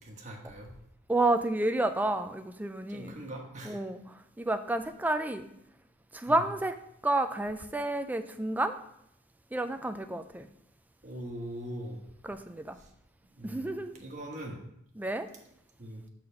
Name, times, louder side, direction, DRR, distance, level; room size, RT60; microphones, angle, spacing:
voice 1, 0.0-0.7 2.9-3.8 6.3-6.4 11.0-12.0 13.4-14.6 15.8-16.0, right 1 dB, 35° right, 1 dB, 1.2 m, -41 dB
voice 2, 1.1-3.2 3.6-4.0 4.4-5.5 6.1-6.7 7.0-8.8 9.5-10.5 12.2-12.8 13.4-13.9 15.0-15.3, right 2 dB, 10° right, 9 dB, 0.3 m, -30 dB
6.6 x 4.1 x 5.7 m, 0.74 s
head